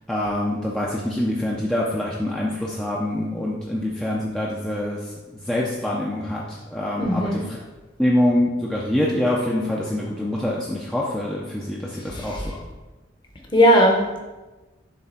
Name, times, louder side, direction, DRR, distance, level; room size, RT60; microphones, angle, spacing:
voice 1, 0.1-7.6 8.0-12.6, left 1 dB, 5° left, -5 dB, 0.6 m, -25 dB
voice 2, 7.0-7.4 12.1-12.4 13.5-14.2, equal, 25° left, 1 dB, 1.0 m, -18 dB
7.4 x 3.5 x 5.7 m, 1.1 s
head